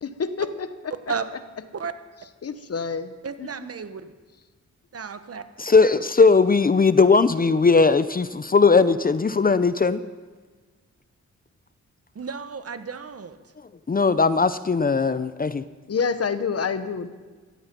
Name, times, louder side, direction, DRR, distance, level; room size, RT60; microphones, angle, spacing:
voice 1, 0.0-0.9 2.4-3.1 3.4-3.5 15.9-17.1, left 5 dB, 55° left, 11 dB, 1.2 m, -27 dB
voice 2, 3.2-4.1 4.9-5.4 12.1-13.4, right 5 dB, 55° right, 10 dB, 1.2 m, -33 dB
voice 3, 5.6-10.0 13.9-15.6, left 4 dB, 30° left, 14 dB, 0.6 m, -18 dB
16.0 x 15.5 x 5.4 m, 1.4 s
cardioid pair, 60°, 29 cm